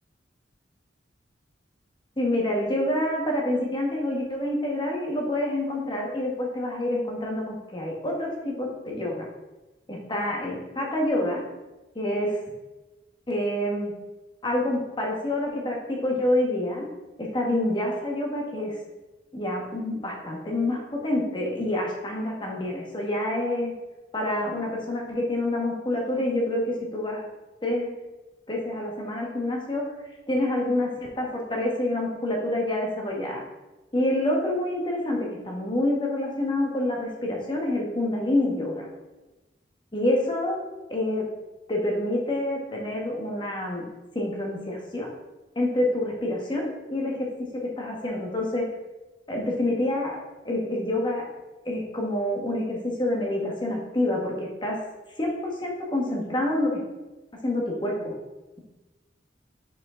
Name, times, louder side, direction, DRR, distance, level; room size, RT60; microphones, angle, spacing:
voice 1, 2.2-9.2 9.9-11.4 11.9-12.4 13.3-13.9 14.4-16.9 17.2-18.8 19.3-23.7 24.1-27.2 27.6-27.9 28.5-29.8 30.3-33.4 33.9-38.9 39.9-40.6 40.9-41.3 41.7-43.8 44.1-45.1 45.5-47.3 47.8-48.6 49.3-50.1 50.4-51.2 51.6-54.8 55.2-56.8 57.4-58.1, left 1 dB, 25° left, -1 dB, 1.3 m, -27 dB
5.5 x 4.9 x 3.8 m, 1.1 s
head